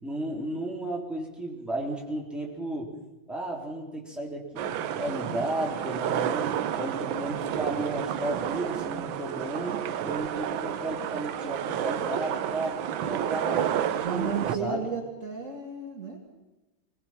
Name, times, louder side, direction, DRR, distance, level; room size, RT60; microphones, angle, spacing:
voice 1, 0.0-2.9 3.3-6.5 6.8-12.8 13.0-14.9, right 1 dB, ahead, -2 dB, 3.5 m, -34 dB
sound 1, 4.6-14.6, right 10 dB, 85° right, 1.6 m, -30 dB
voice 2, 13.9-16.2, right 6 dB, 40° right, 0 dB, 2.6 m, -33 dB
21.5 x 20.5 x 6.0 m, 1.1 s
omnidirectional pair, 2.1 m